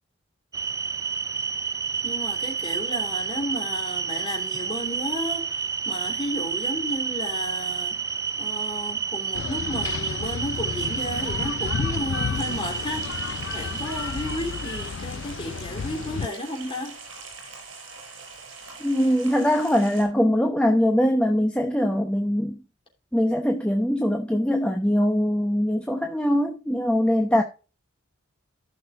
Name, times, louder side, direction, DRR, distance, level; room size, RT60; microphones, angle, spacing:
sound 1, 0.5-14.9, right 6 dB, 15° right, 0.3 m, -30 dB
voice 1, 2.0-8.0 8.4-17.0, equal, 25° left, 3.2 m, -33 dB
sound 2, 9.3-16.3, left 6 dB, 70° left, 0.4 m, -32 dB
sound 3, 12.3-20.0, right 4 dB, 75° right, 5.4 m, -43 dB
voice 2, 18.8-22.6 23.1-27.4, equal, 5° left, 0.9 m, -22 dB
15.5 x 6.3 x 2.5 m
head